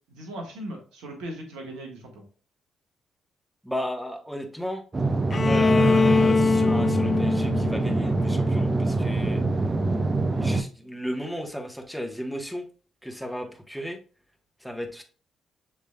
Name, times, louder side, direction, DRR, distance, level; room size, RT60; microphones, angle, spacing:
voice 1, 0.1-2.2, right 1 dB, 65° right, 2 dB, 1.0 m, -38 dB
voice 2, 3.6-4.8 5.4-9.4 10.3-12.7 13.0-14.0 14.6-15.0, equal, ahead, 3 dB, 1.1 m, -34 dB
sound 1, 4.9-10.6, right 3 dB, 30° right, 0.6 m, -25 dB
Bowed string instrument, 5.3-9.2, left 4 dB, 35° left, 0.4 m, -23 dB
6.9 x 3.2 x 2.2 m, 0.38 s
figure-of-eight pair, 40°, 0 cm